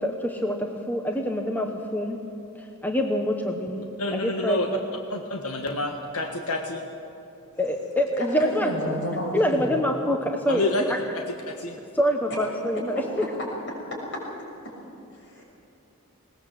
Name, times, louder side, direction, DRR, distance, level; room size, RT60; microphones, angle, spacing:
voice 1, 0.0-2.2 2.8-3.9 4.1-4.8 7.6-8.7 9.3-11.0 11.9-13.0, equal, 10° left, 3 dB, 1.2 m, -25 dB
voice 2, 4.0-4.7 5.1-6.8 10.5-10.8 11.1-11.8, left 2 dB, 90° left, 3 dB, 1.6 m, -28 dB
voice 3, 8.4-9.8 12.9-13.0 13.9-14.0 15.1-15.4, equal, 55° left, -1 dB, 6.4 m, -31 dB
20.5 x 19.0 x 7.7 m, 2.9 s
head